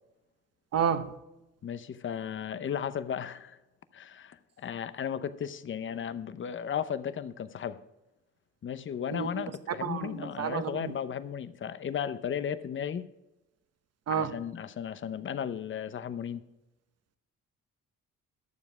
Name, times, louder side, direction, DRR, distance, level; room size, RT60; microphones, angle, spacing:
voice 1, 0.7-1.1 9.1-9.4 9.8-10.9 14.1-14.4, right 7 dB, 55° right, 10 dB, 1.0 m, -30 dB
voice 2, 1.6-3.6 3.9-7.8 8.6-13.0 14.1-16.4, left 8 dB, 40° left, 13 dB, 0.7 m, -35 dB
11.5 x 7.3 x 4.9 m, 0.96 s
cardioid pair, 90°, 30 cm